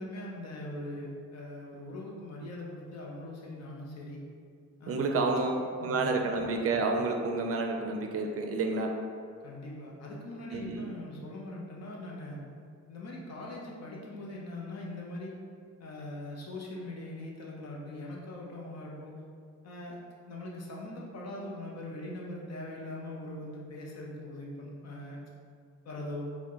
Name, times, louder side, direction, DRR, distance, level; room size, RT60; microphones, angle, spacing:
voice 1, 0.0-4.2 4.8-5.2 5.8-6.1 9.4-12.4 12.9-15.4 15.8-19.2 19.6-25.2 25.8-26.3, left 1 dB, 60° left, -3 dB, 0.8 m, -41 dB
voice 2, 4.9-8.9 10.5-10.9, right 3 dB, 50° right, 3 dB, 0.4 m, -29 dB
4.2 x 2.2 x 3.0 m, 2.2 s
cardioid pair, 90°, 30 cm